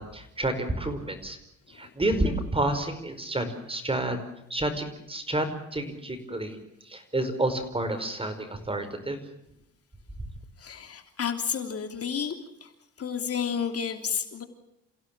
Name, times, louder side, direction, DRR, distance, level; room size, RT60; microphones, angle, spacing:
voice 1, 0.0-1.4 1.7-4.2 4.5-6.6 6.8-9.2, right 1 dB, 20° right, 9 dB, 5.1 m, -29 dB
voice 2, 10.6-12.3 12.6-12.7 13.0-14.4, left 7 dB, 50° left, 6 dB, 3.1 m, -31 dB
29.0 x 16.0 x 7.5 m, 0.80 s
cardioid pair, 90°, 30 cm